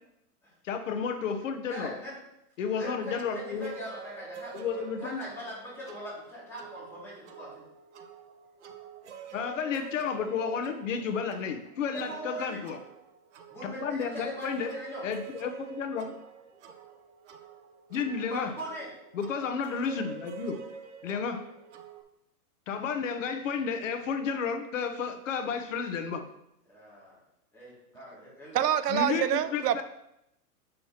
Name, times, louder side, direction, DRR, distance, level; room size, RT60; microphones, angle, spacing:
voice 1, 0.6-1.9 2.6-3.7 4.5-5.2 9.3-12.8 13.6-14.7 15.0-16.1 17.9-18.5 19.1-20.6 21.0-21.4 22.7-26.2 28.9-29.8, left 6 dB, 55° left, 7 dB, 1.0 m, -32 dB
voice 2, 1.7-2.1 2.7-7.6 12.1-12.7 13.5-15.0 18.3-18.9 26.7-27.2 27.5-28.7 29.3-29.7, equal, 5° left, -9 dB, 2.3 m, -41 dB
sound 1, 3.2-22.0, right 5 dB, 45° right, 0.8 m, -47 dB
voice 3, 28.5-29.8, right 10 dB, 85° right, 13 dB, 0.7 m, -26 dB
7.5 x 6.6 x 2.9 m, 0.81 s
hypercardioid pair, 160°, 47 cm